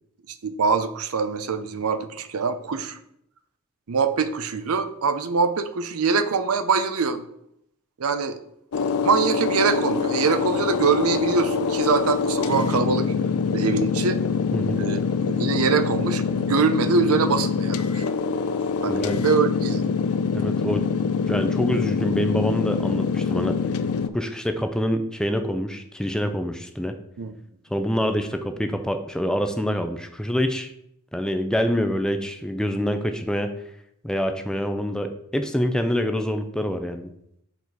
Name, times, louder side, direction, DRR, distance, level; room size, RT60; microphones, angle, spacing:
voice 1, 0.4-3.0 3.9-7.2 8.0-8.4 9.0-13.1 13.5-14.2 14.8-18.0 18.8-19.9 27.2-27.3, right 5 dB, 70° right, 11 dB, 0.6 m, -24 dB
sound 1, 8.7-24.1, left 5 dB, 70° left, 0.5 m, -24 dB
voice 2, 18.9-19.2 20.3-20.9 21.3-23.6 24.1-27.0 27.7-30.7 31.1-33.5 34.0-37.1, equal, 5° left, 7 dB, 0.5 m, -26 dB
7.1 x 4.2 x 4.6 m, 0.75 s
head